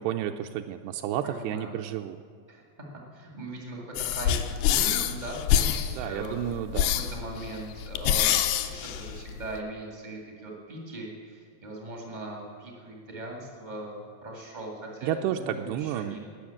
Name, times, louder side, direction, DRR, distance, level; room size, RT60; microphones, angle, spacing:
voice 1, 0.0-2.2 6.0-6.9 15.0-16.2, right 11 dB, 85° right, 5 dB, 2.6 m, -31 dB
voice 2, 1.2-1.7 2.5-2.6 3.1-6.4 6.9-16.2, right 1 dB, 60° right, -1 dB, 0.4 m, -39 dB
asthmatic breathing, 4.0-9.6, left 10 dB, 80° left, 2.6 m, -26 dB
18.5 x 6.5 x 8.5 m, 2.1 s
omnidirectional pair, 4.8 m